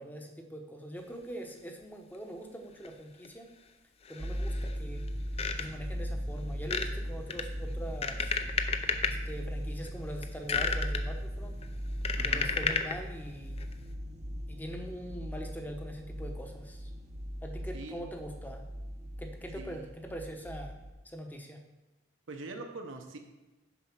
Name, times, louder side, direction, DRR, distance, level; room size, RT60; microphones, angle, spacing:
voice 1, 0.0-3.5 4.1-5.1 5.5-8.3 9.1-11.6 12.2-13.6 14.5-16.9 17.4-18.6 19.2-20.8 21.0-21.6, equal, 10° left, 4 dB, 0.8 m, -42 dB
sound 1, 2.8-2.9 3.2-3.3 4.0-4.8 5.1-5.9 6.6-6.9 7.3-9.1 9.7-9.9 10.2-11.0 11.6-13.0 13.6-13.7, left 5 dB, 30° left, 0.5 m, -32 dB
sound 2, 4.2-20.9, equal, 35° right, 0.7 m, -38 dB
voice 2, 12.2-12.5 17.7-18.0 19.5-19.9 22.3-23.2, right 3 dB, 75° right, 4 dB, 0.9 m, -43 dB
7.1 x 5.1 x 5.9 m, 1.1 s
head